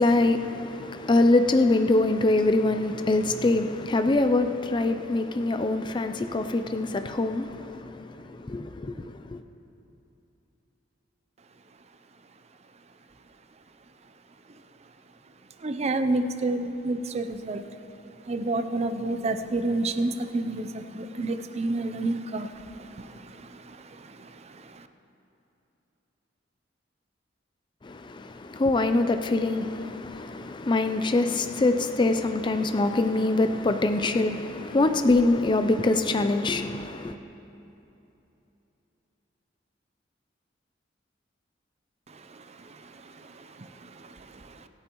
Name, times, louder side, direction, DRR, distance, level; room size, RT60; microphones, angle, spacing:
voice 1, 0.0-8.0 8.3-9.1 27.8-37.2, left 2 dB, 25° left, 0.4 m, -24 dB
voice 2, 15.6-17.6 18.3-22.5, right 2 dB, 35° right, 0.5 m, -28 dB
25.5 x 8.7 x 3.0 m
head